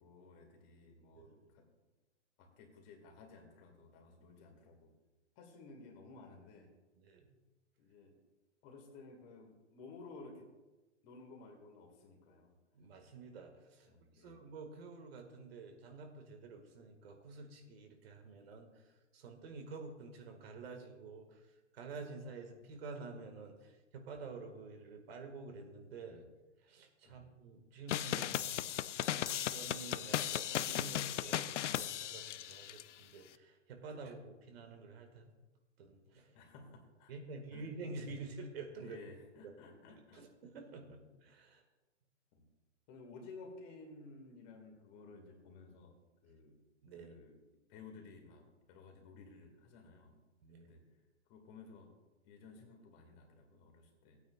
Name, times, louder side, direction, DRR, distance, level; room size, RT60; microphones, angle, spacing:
voice 1, 0.0-1.7 2.4-4.9 5.4-6.7 7.8-8.2 8.6-10.5 11.0-12.5 13.9-14.5 27.0-27.3 36.3-37.1 37.5-37.6 38.8-40.3 40.8-41.0 42.3-42.5 42.9-46.0 46.2-46.6 46.9-47.4 47.7-50.2 50.6-50.8 51.3-51.9 52.2-54.2, left 3 dB, 35° left, 2 dB, 2.0 m, -55 dB
voice 2, 7.0-7.3 12.8-13.9 14.2-18.8 19.1-21.4 21.7-26.3 26.6-28.7 29.1-35.3 35.8-36.3 37.1-39.0 39.4-39.5 39.9-41.6 46.8-47.1 50.4-50.8, right 3 dB, 55° right, 4 dB, 1.9 m, -49 dB
sound 1, 27.9-32.8, left 11 dB, 75° left, 0.5 m, -36 dB
17.0 x 9.0 x 2.4 m, 1.1 s
hypercardioid pair, 130°, 36 cm